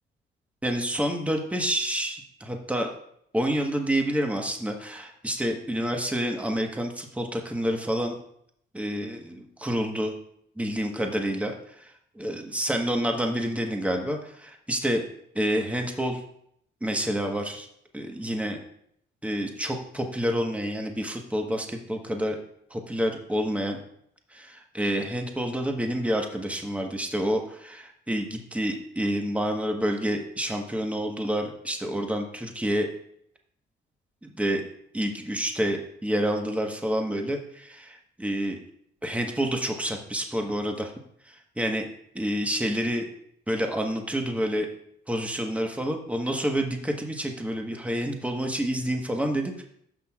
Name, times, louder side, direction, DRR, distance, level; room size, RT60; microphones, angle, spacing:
voice 1, 0.6-2.9 3.3-8.2 8.7-10.1 10.6-11.9 12.1-15.0 15.3-16.2 16.8-17.7 17.9-18.6 19.2-22.4 22.7-23.8 24.3-32.9 34.2-34.6 34.9-38.6 39.0-40.9 41.3-41.9 42.1-43.1 43.5-44.7 45.1-49.6, equal, 5° right, 3 dB, 1.2 m, -28 dB
14.5 x 6.1 x 2.4 m, 0.70 s
cardioid pair, 90°, 20 cm